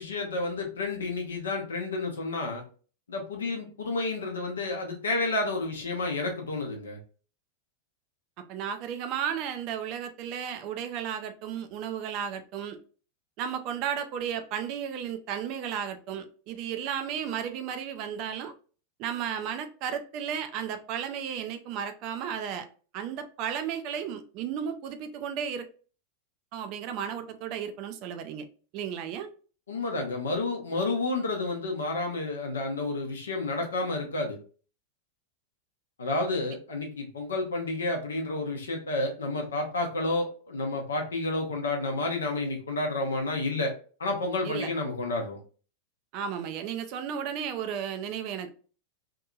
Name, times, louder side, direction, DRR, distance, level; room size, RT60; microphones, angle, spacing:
voice 1, 0.0-2.6 3.1-7.0 29.7-34.4 36.0-43.7 44.0-45.4, left 2 dB, 70° left, 0.6 m, -30 dB
voice 2, 8.5-12.8 13.4-18.5 19.0-22.7 22.9-25.7 26.5-28.5 28.7-29.3 44.4-44.7 46.1-48.5, right 8 dB, 40° right, 0.3 m, -34 dB
2.7 x 2.5 x 2.3 m
figure-of-eight pair, 90°, 0 cm